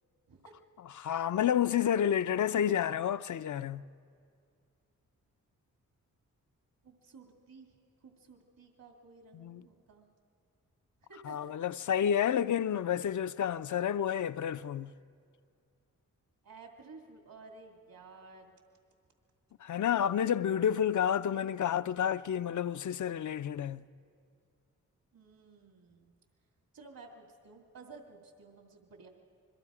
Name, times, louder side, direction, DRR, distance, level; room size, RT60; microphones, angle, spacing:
voice 1, 1.0-3.8 9.3-9.6 11.2-14.9 19.6-23.8, left 9 dB, 55° left, 0.6 m, -30 dB
voice 2, 6.8-10.1 11.0-11.5 12.2-12.3 16.4-18.5 25.1-26.1 26.7-29.1, right 4 dB, 70° right, 2.5 m, -54 dB
26.5 x 22.5 x 5.0 m
supercardioid pair, 50°, 36 cm